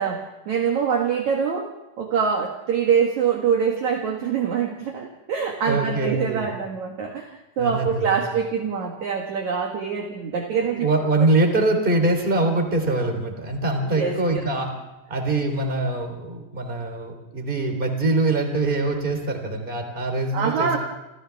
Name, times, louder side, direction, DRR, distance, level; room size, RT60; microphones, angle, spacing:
voice 1, 0.0-10.9 11.2-11.3 13.8-14.4 20.3-20.8, right 6 dB, 60° right, 2 dB, 2.0 m, -24 dB
voice 2, 5.6-6.5 7.6-8.2 10.6-14.7 15.1-20.8, right 2 dB, 15° right, 5 dB, 2.9 m, -23 dB
29.0 x 27.0 x 3.5 m, 1.0 s
omnidirectional pair, 5.6 m